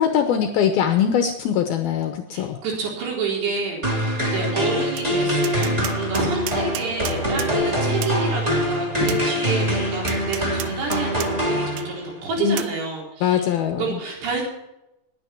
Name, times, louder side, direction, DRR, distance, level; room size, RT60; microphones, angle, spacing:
voice 1, 0.0-2.6 12.4-12.6 13.2-14.0, left 8 dB, 75° left, 6 dB, 2.4 m, -22 dB
voice 2, 2.3-13.5 13.8-14.4, right 4 dB, 65° right, -2 dB, 6.1 m, -28 dB
sound 1, 3.8-12.2, equal, 10° right, 2.3 m, -24 dB
Tap, 5.0-5.1 5.4-7.5 8.0-8.2 9.1-9.2 10.1-11.3 11.8-11.9 12.6-12.7, right 13 dB, 85° right, 2.1 m, -33 dB
20.0 x 9.4 x 4.5 m, 0.90 s
omnidirectional pair, 5.3 m